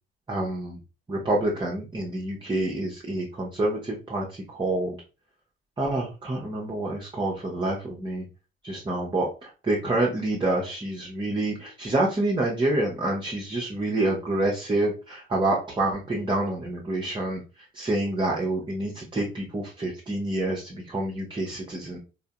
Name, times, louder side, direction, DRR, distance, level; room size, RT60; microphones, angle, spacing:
voice 1, 0.3-0.8 1.1-5.0 5.8-8.2 8.6-17.4 17.7-22.0, right 2 dB, 15° right, -2 dB, 0.7 m, -27 dB
3.6 x 2.1 x 2.2 m, 0.33 s
figure-of-eight pair, 40°, 29 cm